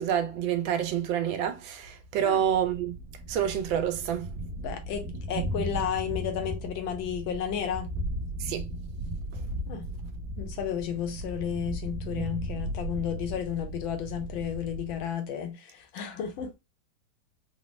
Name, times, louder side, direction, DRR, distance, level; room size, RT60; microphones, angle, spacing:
voice 1, 0.0-3.0 3.3-4.3 8.4-8.6 9.3-9.4, right 9 dB, 75° right, 1.3 m, -28 dB
Thunder, 2.5-15.1, right 1 dB, 60° right, 1.0 m, -36 dB
voice 2, 4.6-7.9 9.7-9.9 10.4-16.5, left 8 dB, 85° left, 1.5 m, -32 dB
4.0 x 2.0 x 3.0 m
omnidirectional pair, 2.1 m